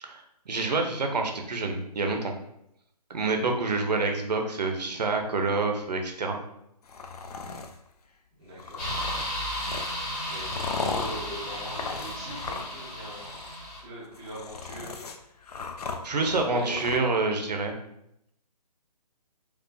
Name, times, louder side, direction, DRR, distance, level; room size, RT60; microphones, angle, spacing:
voice 1, 0.0-2.3 3.1-6.4 16.0-17.7, right 3 dB, 80° right, 3 dB, 0.8 m, -27 dB
sound 1, 6.8-7.8 8.6-12.9 13.1-13.6 14.0-17.0, left 4 dB, 65° left, 0.5 m, -37 dB
voice 2, 8.4-9.0 10.3-13.2 13.8-15.0 16.2-16.9, equal, 10° right, -7 dB, 0.5 m, -41 dB
sound 2, 8.8-13.8, equal, 20° left, 1.1 m, -34 dB
4.5 x 2.4 x 2.7 m, 0.78 s
hypercardioid pair, 160°, 21 cm